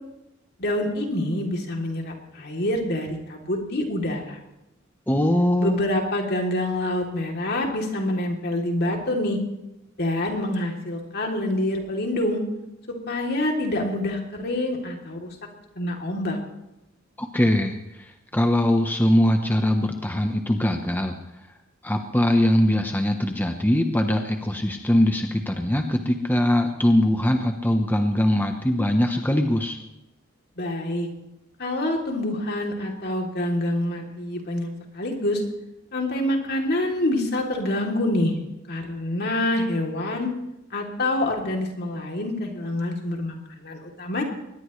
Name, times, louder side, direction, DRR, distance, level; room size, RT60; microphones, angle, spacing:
voice 1, 0.6-4.4 5.6-9.4 10.0-12.4 12.9-15.3 15.8-16.4 30.6-31.1 31.6-34.7 34.9-35.4 35.9-38.3 38.7-40.3 40.7-44.2, left 1 dB, 55° left, 1 dB, 3.2 m, -26 dB
voice 2, 5.1-5.8 17.2-21.2 21.8-29.8, left 1 dB, 10° left, 4 dB, 0.9 m, -22 dB
22.5 x 20.0 x 3.2 m, 0.92 s
head